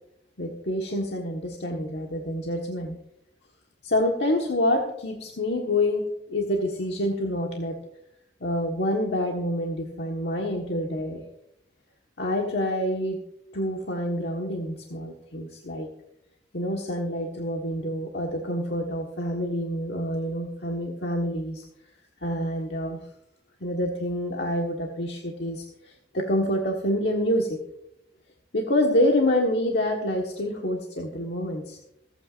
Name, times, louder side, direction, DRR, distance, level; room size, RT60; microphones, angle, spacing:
voice 1, 0.4-3.0 3.8-7.8 8.4-11.2 12.2-13.2 13.5-15.9 16.5-21.6 22.2-23.0 23.6-27.6 28.5-31.8, left 1 dB, 85° left, 0 dB, 1.5 m, -27 dB
26.5 x 9.0 x 2.6 m, 0.79 s
head